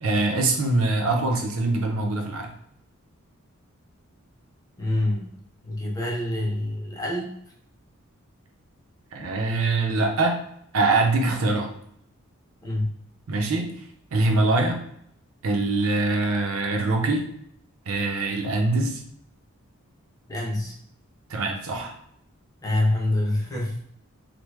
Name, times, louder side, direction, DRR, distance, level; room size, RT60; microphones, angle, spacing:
voice 1, 0.0-2.5 9.1-10.4 10.7-11.7 13.3-13.7 14.1-14.8 15.4-17.3 17.9-19.0 21.3-21.9, right 2 dB, 80° right, 3 dB, 0.6 m, -23 dB
voice 2, 4.8-5.3 5.6-7.4 12.6-12.9 20.3-20.7 22.6-23.8, left 1 dB, 15° left, -2 dB, 0.5 m, -26 dB
3.3 x 2.1 x 3.1 m, 0.70 s
head